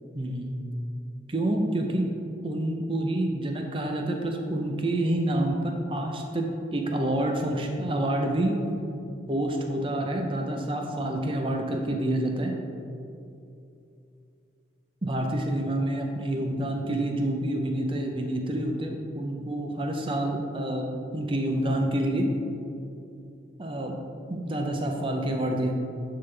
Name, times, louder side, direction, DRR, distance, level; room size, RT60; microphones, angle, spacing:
voice 1, 0.2-0.6 1.3-2.1 2.4-8.6 9.3-12.5 15.0-22.3 23.6-23.9 24.3-25.7, right 1 dB, 25° right, 2 dB, 0.6 m, -28 dB
10.5 x 3.8 x 3.3 m, 2.6 s
head